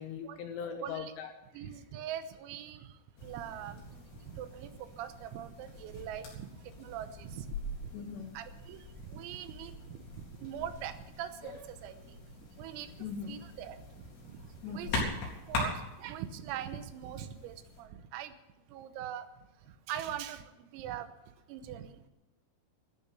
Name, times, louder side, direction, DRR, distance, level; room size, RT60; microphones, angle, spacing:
voice 1, 0.0-1.7 7.9-8.4 13.0-13.3 14.6-15.0, left 6 dB, 75° left, 6 dB, 2.7 m, -41 dB
voice 2, 0.8-1.1 1.5-2.9 3.2-3.8 4.3-6.5 6.8-7.5 8.4-10.0 10.4-12.0 12.6-12.9 13.3-13.8 14.3-15.0 15.5-18.3 18.7-19.3 19.9-21.1 21.5-22.1, right 10 dB, 85° right, 10 dB, 3.8 m, -42 dB
sound 1, 3.2-17.8, left 2 dB, 55° left, 5.7 m, -42 dB
14.0 x 11.0 x 8.2 m, 1.0 s
omnidirectional pair, 5.9 m